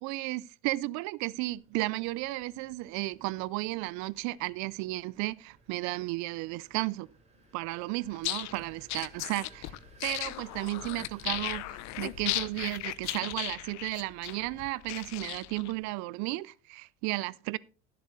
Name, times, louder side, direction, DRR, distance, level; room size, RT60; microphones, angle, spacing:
voice 1, 0.0-7.1 7.5-9.7 10.0-17.6, right 20 dB, 60° right, 0.5 m, -34 dB
sound 1, 1.4-13.5, right 3 dB, 20° right, 4.0 m, -60 dB
sound 2, 8.1-15.7, left 17 dB, 60° left, 0.8 m, -36 dB
12.5 x 7.6 x 4.0 m
supercardioid pair, 110°, 32 cm